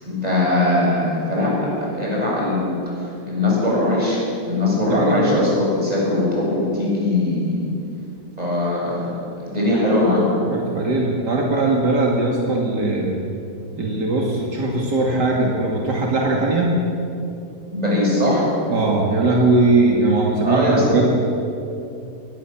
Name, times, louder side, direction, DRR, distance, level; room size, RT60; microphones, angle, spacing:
voice 1, 0.0-7.6 8.4-10.3 17.7-18.5 20.4-20.8, left 1 dB, 20° right, -5 dB, 8.0 m, -21 dB
voice 2, 4.9-5.5 10.5-13.2 13.8-16.7 18.7-21.1, right 2 dB, 80° right, -1 dB, 3.0 m, -20 dB
22.0 x 19.5 x 7.4 m, 2.7 s
omnidirectional pair, 1.8 m